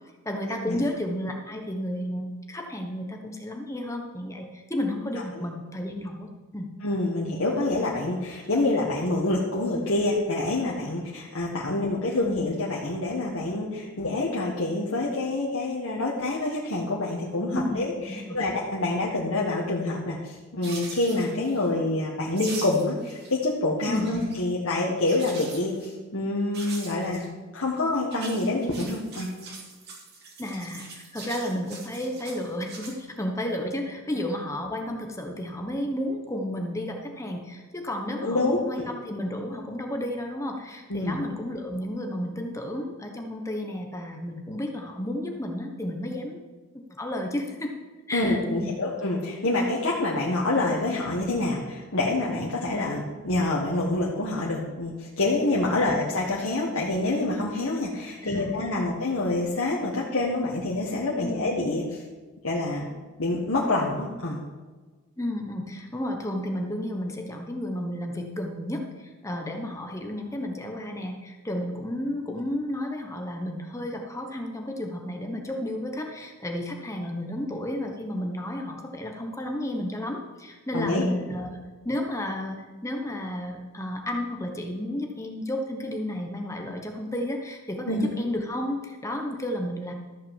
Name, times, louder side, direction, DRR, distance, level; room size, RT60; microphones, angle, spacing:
voice 1, 0.2-6.7 17.5-17.8 18.1-18.4 23.9-24.2 30.4-46.4 47.0-47.7 48.1-48.8 55.8-56.0 58.2-58.9 61.2-61.5 65.2-89.9, left 1 dB, 15° left, 3 dB, 1.1 m, -32 dB
voice 2, 6.8-29.3 38.2-38.9 40.9-41.2 48.1-62.0 62.4-62.9 63.2-64.4 80.7-81.0 87.8-88.1, left 2 dB, 80° left, -4 dB, 1.7 m, -27 dB
sound 1, 20.6-21.7 22.3-23.4 23.7-24.3 25.0-25.9 26.5-27.3 28.0-32.9, right 3 dB, 50° right, 2.7 m, -42 dB
13.5 x 5.8 x 7.4 m, 1.3 s
head